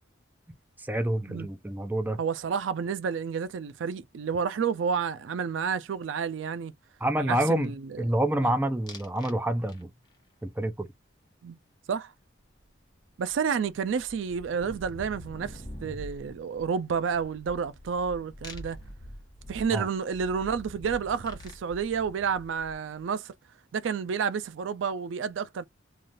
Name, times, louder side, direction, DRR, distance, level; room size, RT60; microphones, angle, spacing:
voice 1, 0.8-2.2 7.0-7.7 8.0-9.9 10.4-10.9 19.7-19.8, right 1 dB, 10° right, 0.4 m, -27 dB
voice 2, 2.2-6.7 7.2-8.0 8.4-8.5 11.4-11.6 11.9-12.1 13.2-18.8 19.5-23.3 23.7-25.6, right 6 dB, 75° right, 0.4 m, -30 dB
sound 1, 8.9-9.4 9.7-10.2 12.6-12.7 12.9-23.0, equal, 20° left, 1.1 m, -45 dB
3.2 x 2.4 x 2.5 m
head